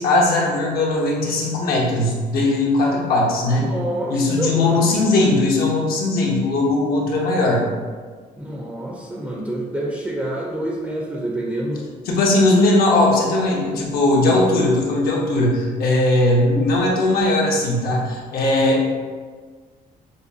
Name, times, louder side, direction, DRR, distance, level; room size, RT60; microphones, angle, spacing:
voice 1, 0.0-3.7 4.1-7.6 12.0-18.9, left 2 dB, 65° left, -2 dB, 1.0 m, -19 dB
voice 2, 3.6-5.0 8.4-11.8, right 1 dB, 10° right, -2 dB, 0.6 m, -27 dB
6.8 x 2.3 x 2.7 m, 1.5 s
cardioid pair, 110°, 17 cm